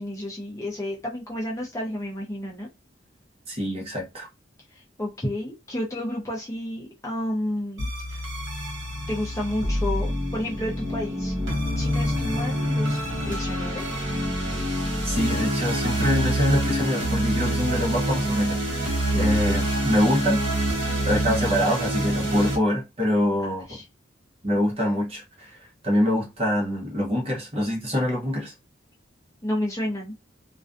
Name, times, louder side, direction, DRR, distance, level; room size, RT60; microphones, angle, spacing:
voice 1, 0.0-2.7 5.0-8.2 9.1-11.3 11.8-13.0 13.3-14.1 19.0-19.4 23.4-23.8 29.4-30.1, left 1 dB, 15° left, 0.5 m, -31 dB
voice 2, 3.5-4.3 15.0-20.5 21.0-23.8 24.4-25.6 25.8-28.5, equal, 30° right, 0.8 m, -25 dB
sound 1, 7.8-22.6, equal, 85° right, 1.1 m, -26 dB
2.4 x 2.2 x 2.5 m
head